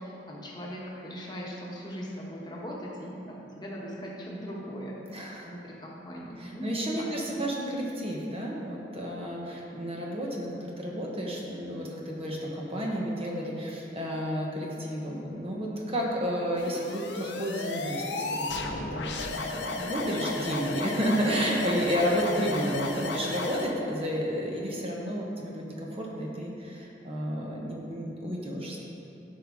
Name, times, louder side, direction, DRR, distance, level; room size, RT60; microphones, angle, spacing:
voice 1, 0.0-7.5, equal, 25° left, -4 dB, 1.2 m, -40 dB
voice 2, 5.1-5.5 6.4-25.6 25.9-28.8, equal, 35° right, -2 dB, 1.1 m, -31 dB
sound 1, 16.6-23.7, left 2 dB, 80° left, 0.7 m, -34 dB
12.0 x 4.9 x 3.6 m, 2.9 s
head